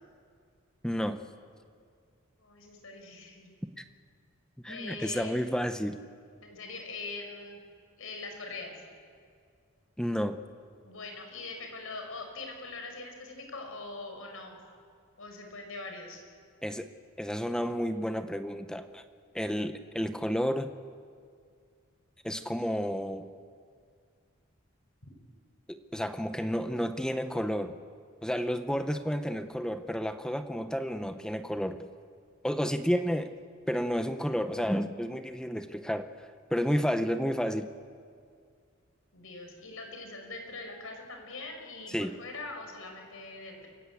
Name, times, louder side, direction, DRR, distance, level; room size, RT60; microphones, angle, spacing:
voice 1, 0.8-1.2 4.6-6.0 10.0-10.4 16.6-16.9 17.2-19.0 19.3-20.7 22.2-23.3 25.7-27.7 28.2-31.9 32.4-33.3 33.7-37.7 41.9-42.2, equal, 5° left, 9 dB, 0.7 m, -31 dB
voice 2, 2.4-3.5 4.7-5.4 6.4-7.6 8.0-8.8 10.8-14.6 15.2-16.2 39.1-43.7, left 3 dB, 80° left, 4 dB, 5.2 m, -42 dB
28.5 x 16.5 x 8.5 m, 2.2 s
head